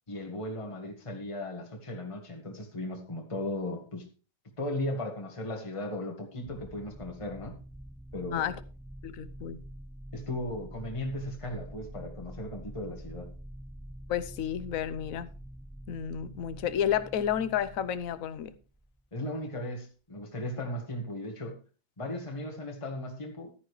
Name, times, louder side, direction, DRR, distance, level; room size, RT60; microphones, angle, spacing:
voice 1, 0.1-4.1 4.6-7.6 8.1-8.6 10.1-13.3 19.1-21.6 22.0-23.5, left 1 dB, 20° left, 1.7 m, -36 dB
sound 1, 6.4-19.4, right 1 dB, 5° right, 0.8 m, -46 dB
voice 2, 9.0-9.6 14.1-15.3 15.9-18.5, left 9 dB, 60° left, 1.1 m, -31 dB
13.0 x 9.9 x 3.2 m
omnidirectional pair, 1.7 m